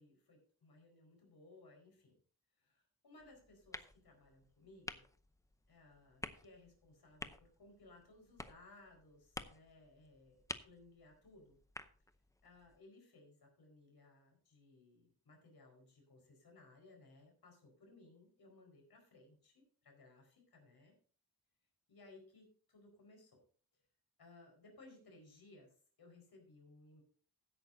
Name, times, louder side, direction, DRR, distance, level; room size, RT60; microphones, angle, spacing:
voice 1, 0.0-2.1 2.6-5.0 5.7-11.6 12.4-20.9 21.9-23.4 24.2-27.0, left 2 dB, 70° left, 2 dB, 4.8 m, -62 dB
sound 1, 3.2-12.8, left 1 dB, 10° left, 0.7 m, -52 dB
16.0 x 9.2 x 2.7 m, 0.42 s
wide cardioid pair, 125°, 39 cm